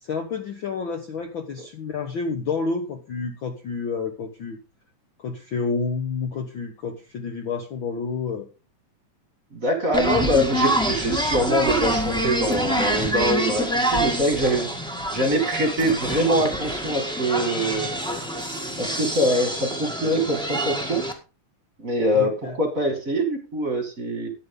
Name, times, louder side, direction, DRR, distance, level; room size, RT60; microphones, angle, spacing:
voice 1, 0.0-4.6 5.2-8.5 22.1-22.5, left 4 dB, 85° left, 5 dB, 1.1 m, -29 dB
voice 2, 9.5-14.7 15.1-17.9 18.8-21.0 21.8-24.3, equal, 30° right, 5 dB, 2.0 m, -24 dB
sound 1, 9.9-21.1, equal, 5° left, 0.5 m, -26 dB
13.0 x 9.6 x 3.8 m, 0.32 s
omnidirectional pair, 4.0 m